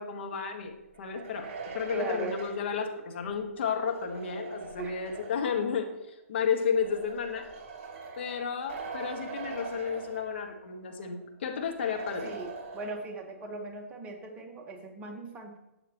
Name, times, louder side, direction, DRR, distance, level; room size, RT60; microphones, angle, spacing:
voice 1, 0.0-7.5 8.2-12.3, left 6 dB, 50° left, 3 dB, 1.4 m, -32 dB
sound 1, 0.9-5.6 6.6-10.7 11.0-11.1 11.8-13.3, right 4 dB, 35° right, 3.9 m, -43 dB
voice 2, 1.9-2.4 4.8-5.0 7.9-8.2 12.2-12.5 12.7-15.6, right 3 dB, 15° right, 2 dB, 1.3 m, -39 dB
12.5 x 8.7 x 3.0 m, 0.92 s
figure-of-eight pair, 120°, 8 cm